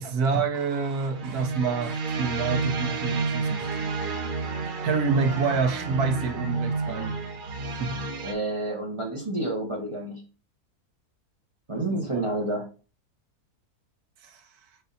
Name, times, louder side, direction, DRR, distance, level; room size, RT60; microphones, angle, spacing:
voice 1, 0.0-3.7 4.8-7.2 7.8-8.0 11.9-12.2 14.2-14.4, right 5 dB, 75° right, 1.2 m, -27 dB
sound 1, 1.1-8.3, right 4 dB, 60° right, 0.5 m, -30 dB
voice 2, 8.2-10.2 11.7-12.7, right 2 dB, 25° right, 0.8 m, -29 dB
5.1 x 3.9 x 2.6 m
omnidirectional pair, 1.7 m